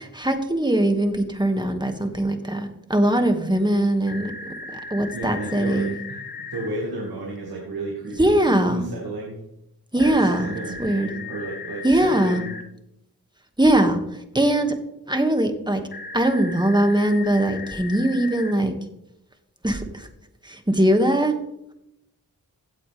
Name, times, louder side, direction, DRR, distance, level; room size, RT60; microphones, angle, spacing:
voice 1, 0.0-4.3 4.7-6.0 8.2-8.8 9.9-10.5 10.8-11.1 11.8-12.4 13.6-14.0 14.3-14.7 15.1-15.8 16.1-18.7 19.6-20.1 20.4-21.3, right 1 dB, 10° right, 6 dB, 1.9 m, -21 dB
sound 1, 4.1-6.7 10.0-12.6 15.9-18.5, left 4 dB, 80° left, 1.3 m, -37 dB
voice 2, 5.1-9.4 10.0-12.5, right 2 dB, 90° right, -1 dB, 2.1 m, -33 dB
16.0 x 8.5 x 3.4 m, 0.82 s
cardioid pair, 45°, 36 cm